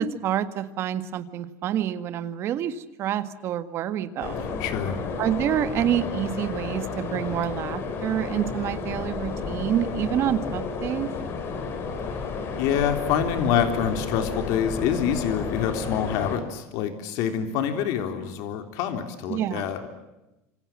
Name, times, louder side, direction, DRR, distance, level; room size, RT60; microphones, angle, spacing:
voice 1, 0.0-4.5 5.2-11.1 19.3-19.7, right 10 dB, 40° right, 11 dB, 1.8 m, -27 dB
sound 1, 4.2-16.4, left 5 dB, 35° left, 4.8 m, -32 dB
voice 2, 4.6-5.0 12.6-19.9, left 8 dB, 60° left, 7 dB, 3.6 m, -26 dB
27.5 x 27.0 x 7.5 m, 0.95 s
cardioid pair, 170°, 7 cm